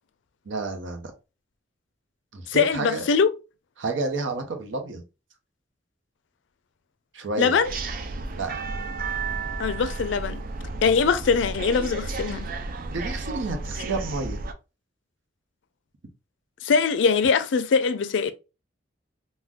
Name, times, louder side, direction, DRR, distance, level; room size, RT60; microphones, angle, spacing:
voice 1, 0.5-1.1 2.3-3.1 3.8-5.0 7.1-7.6 8.3-8.5 12.9-14.4, right 3 dB, 80° right, 0.7 m, -30 dB
voice 2, 2.5-3.3 7.4-7.7 9.6-10.4 10.8-12.5 16.6-18.3, left 5 dB, 75° left, 0.4 m, -22 dB
sound 1, 7.6-14.5, right 3 dB, 50° right, 0.4 m, -32 dB
3.5 x 2.1 x 2.4 m
head